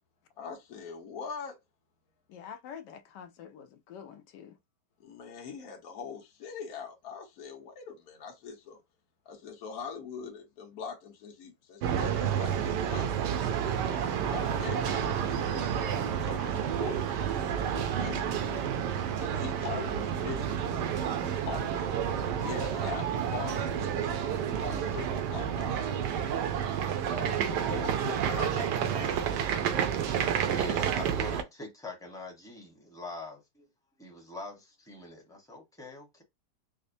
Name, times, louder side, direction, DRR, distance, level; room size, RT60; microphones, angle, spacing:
voice 1, 0.4-1.6 5.0-8.8 9.3-13.3 14.1-18.7 19.2-21.8 22.4-25.7 27.2-29.3, left 6 dB, 60° left, 1.4 m, -42 dB
voice 2, 2.3-4.6, left 8 dB, 80° left, 1.2 m, -46 dB
sound 1, 11.8-31.4, right 8 dB, 75° right, 1.2 m, -30 dB
voice 3, 30.0-33.7 34.0-36.2, left 2 dB, 5° left, 0.8 m, -43 dB
5.1 x 2.0 x 2.6 m
omnidirectional pair, 1.9 m